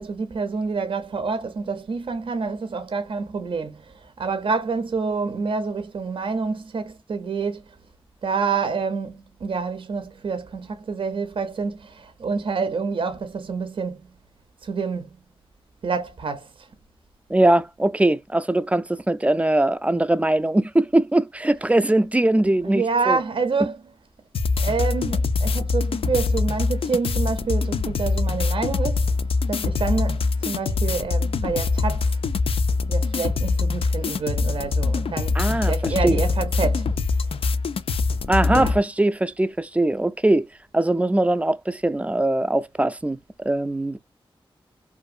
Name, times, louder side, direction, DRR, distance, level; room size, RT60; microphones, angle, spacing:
voice 1, 0.0-7.6 8.2-9.1 9.4-14.0 14.6-15.1 15.8-16.7 22.6-23.8 24.6-29.1 29.5-32.2 32.9-35.4 35.6-36.9 38.5-38.8, right 4 dB, 70° right, 0.5 m, -27 dB
voice 2, 17.3-23.2 35.4-36.2 38.3-40.5 40.7-43.2 43.5-44.0, right 1 dB, 15° right, 0.3 m, -21 dB
sound 1, 24.3-38.8, left 4 dB, 80° left, 0.4 m, -23 dB
2.7 x 2.5 x 2.4 m
wide cardioid pair, 70°, 10 cm